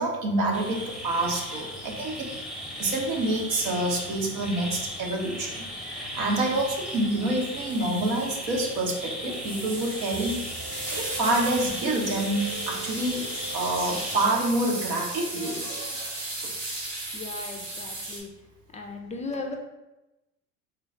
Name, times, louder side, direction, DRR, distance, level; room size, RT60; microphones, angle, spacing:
voice 1, 0.0-2.3 2.8-10.4 10.9-13.2 13.5-16.1 16.4-16.5, right 2 dB, 70° right, 0 dB, 1.0 m, -27 dB
sound 1, 0.5-14.3, equal, ahead, 0.8 m, -37 dB
sound 2, 6.5-18.2, right 2 dB, 85° right, 1.4 m, -36 dB
sound 3, 10.1-15.2, right 6 dB, 35° right, 1.0 m, -42 dB
voice 2, 17.1-18.3 18.7-19.6, left 3 dB, 20° left, 2 dB, 0.4 m, -36 dB
3.8 x 2.3 x 4.3 m, 1.0 s
hypercardioid pair, 85°, 38 cm